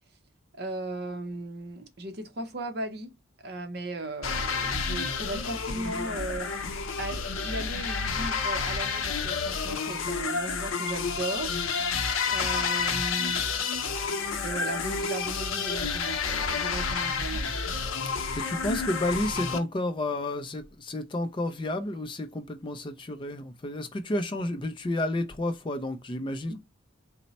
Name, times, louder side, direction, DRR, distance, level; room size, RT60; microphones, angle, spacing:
voice 1, 0.5-3.1 3.4-6.5 7.0-11.9 12.3-13.4 14.4-17.5 26.5-26.6, right 2 dB, 50° right, 0.7 m, -36 dB
sound 1, 4.2-19.6, left 5 dB, 85° left, 0.7 m, -30 dB
voice 2, 18.0-26.6, left 1 dB, 25° left, 0.4 m, -31 dB
4.2 x 2.0 x 4.0 m
head